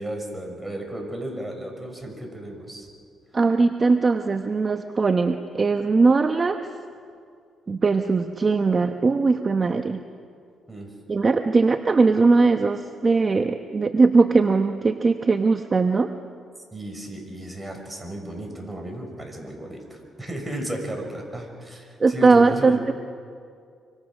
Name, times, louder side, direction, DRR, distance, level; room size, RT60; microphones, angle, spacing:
voice 1, 0.0-2.9 10.7-10.9 16.7-22.8, right 1 dB, 10° right, 1 dB, 6.2 m, -34 dB
voice 2, 3.3-6.6 7.7-10.0 11.1-16.1 22.0-22.9, right 4 dB, 35° right, 6 dB, 1.0 m, -20 dB
26.5 x 25.5 x 6.4 m, 2.3 s
cardioid pair, 90°, 0 cm